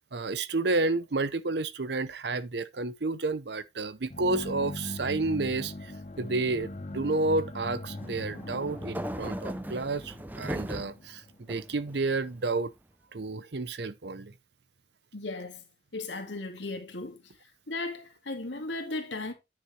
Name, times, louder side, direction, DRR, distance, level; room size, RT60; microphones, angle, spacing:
voice 1, 0.1-5.9 6.2-11.2 11.5-12.7 13.1-14.3, right 3 dB, 70° right, 0.7 m, -30 dB
sound 1, 4.1-11.9, left 1 dB, 40° left, 0.8 m, -41 dB
sound 2, 8.0-11.0 11.5-12.3, right 1 dB, 10° right, 0.5 m, -38 dB
voice 2, 15.1-15.7 15.9-17.2 17.7-19.3, left 2 dB, 90° left, 2.2 m, -36 dB
9.8 x 6.6 x 3.2 m
head